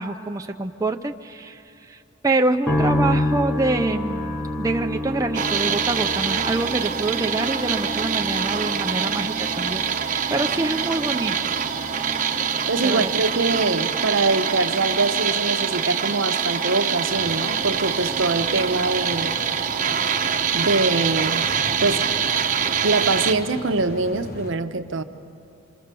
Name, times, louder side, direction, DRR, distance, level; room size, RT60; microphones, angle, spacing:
voice 1, 0.0-2.0 2.2-11.5 12.8-13.1, right 2 dB, 15° right, 4 dB, 0.6 m, -26 dB
sound 1, 2.7-17.9 18.2-19.0, left 1 dB, 5° left, 1.2 m, -31 dB
sound 2, 5.3-23.3, right 7 dB, 40° right, 0.9 m, -25 dB
voice 2, 12.7-19.4 20.5-21.5 21.8-22.0 22.8-25.0, right 3 dB, 70° right, 8 dB, 0.9 m, -23 dB
sound 3, 17.1-24.5, left 1 dB, 50° left, 1.2 m, -38 dB
27.0 x 24.5 x 6.9 m, 2.6 s
head